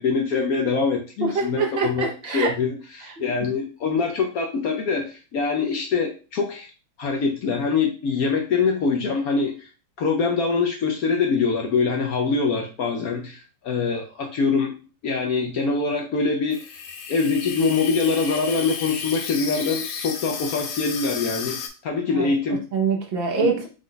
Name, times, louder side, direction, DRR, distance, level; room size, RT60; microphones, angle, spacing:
voice 1, 0.0-6.7 7.0-9.7 10.0-14.8 15.0-16.8 17.1-22.6 23.4-23.5, left 4 dB, 70° left, 2 dB, 0.9 m, -24 dB
voice 2, 1.2-2.5 22.1-22.3 22.7-23.7, right 4 dB, 65° right, 2 dB, 0.5 m, -24 dB
Water tap faucet / Sink (filling or washing), 16.5-21.7, left 6 dB, 90° left, 1.5 m, -33 dB
5.0 x 2.2 x 3.8 m, 0.34 s
omnidirectional pair, 2.1 m